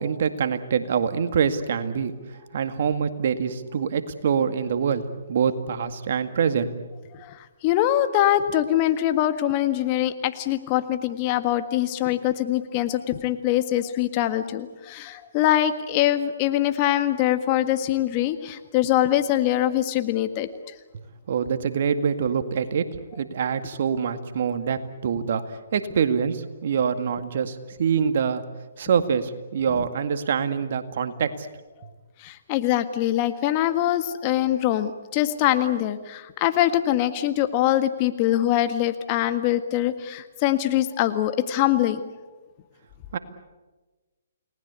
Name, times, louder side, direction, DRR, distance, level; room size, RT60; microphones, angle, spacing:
voice 1, 0.0-2.1 2.5-6.7 21.3-28.4 28.8-31.5 43.1-43.2, right 7 dB, 55° right, 10 dB, 2.0 m, -25 dB
voice 2, 7.1-20.5 32.2-42.0, left 13 dB, 35° left, 10 dB, 1.7 m, -23 dB
30.0 x 19.5 x 8.3 m, 1.2 s
hypercardioid pair, 140°, 0 cm